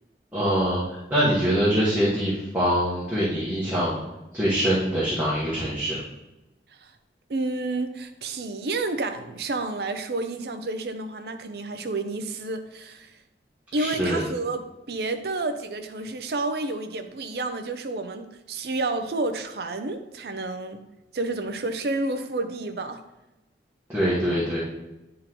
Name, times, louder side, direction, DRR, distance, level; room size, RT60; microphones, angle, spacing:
voice 1, 0.3-4.0 4.3-6.0 13.8-14.2 23.9-24.6, equal, 10° right, -9 dB, 1.2 m, -24 dB
voice 2, 7.3-13.1 13.7-20.9 21.1-23.0, right 2 dB, 65° right, 8 dB, 0.6 m, -30 dB
9.6 x 3.7 x 3.0 m, 1.0 s
head